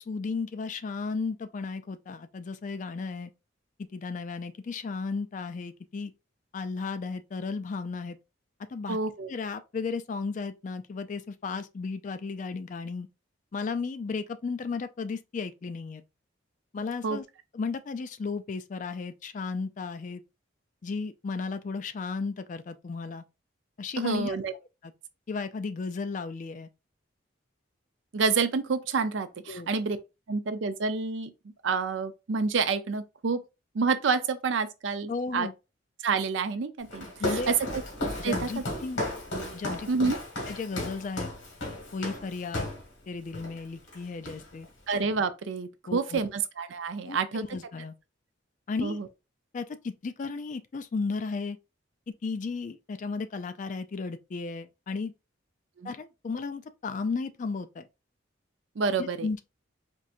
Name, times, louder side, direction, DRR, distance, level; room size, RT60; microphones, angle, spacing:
voice 1, 0.0-3.3 3.9-6.1 6.5-8.2 8.7-9.0 9.3-13.1 13.5-16.0 16.7-17.2 17.5-20.2 20.8-23.2 23.8-24.4 24.8-24.9 25.3-26.7 29.5-29.7 35.1-35.5 37.2-37.5 38.2-39.0 39.5-39.9 40.5-41.3 41.9-42.7 43.1-44.7 45.9-46.2 47.1-47.9 48.7-49.0 49.5-51.6 52.2-55.1 55.8-57.9 59.0-59.4, left 4 dB, 40° left, 0.3 m, -34 dB
voice 2, 8.9-9.3 17.0-17.2 24.0-24.5 28.1-30.0 30.3-31.3 31.6-33.4 33.7-35.5 36.0-37.8 38.2-38.6 39.9-40.2 44.9-47.4 48.8-49.1 55.8-55.9 58.8-59.3, right 5 dB, 75° right, 0.5 m, -28 dB
Walk footsteps, 36.9-42.9 43.3-43.6 43.9-44.7, left 1 dB, 70° left, 1.5 m, -34 dB
4.4 x 2.7 x 2.4 m
head